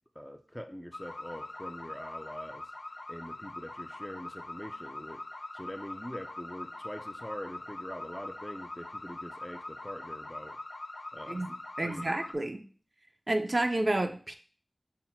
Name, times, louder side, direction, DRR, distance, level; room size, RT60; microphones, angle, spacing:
voice 1, 0.2-2.6 3.1-5.2 5.5-10.6 11.1-11.4 11.8-12.1, equal, 5° left, 6 dB, 0.5 m, -43 dB
sound 1, 0.9-12.3, left 2 dB, 65° left, 0.7 m, -43 dB
voice 2, 11.3-12.6 13.3-14.4, right 1 dB, 45° right, 5 dB, 0.5 m, -30 dB
5.7 x 2.1 x 4.3 m, 0.41 s
wide cardioid pair, 65°, 0 cm